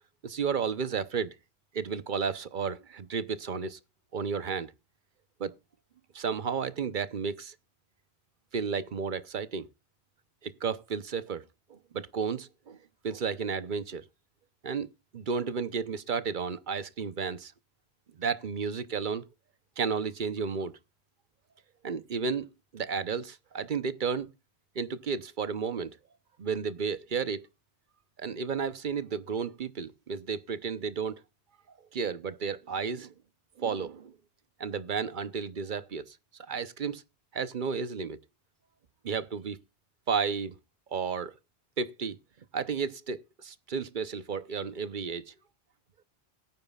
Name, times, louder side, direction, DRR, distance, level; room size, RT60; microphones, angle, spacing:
voice 1, 0.2-1.4 1.7-3.8 4.1-4.7 5.4-5.5 6.1-7.5 8.5-9.7 10.4-11.4 11.7-12.8 13.0-14.0 14.6-14.9 15.1-17.5 18.2-19.2 19.8-20.8 21.8-22.5 22.7-24.3 24.8-26.0 26.4-27.5 28.2-31.2 31.9-33.1 33.6-34.1 34.6-36.2 36.5-37.0 37.3-38.2 39.0-39.6 40.1-40.5 40.9-41.3 41.8-42.2 42.5-45.3, right 6 dB, 50° right, 0.9 m, -32 dB
18.5 x 9.4 x 2.3 m
omnidirectional pair, 1.1 m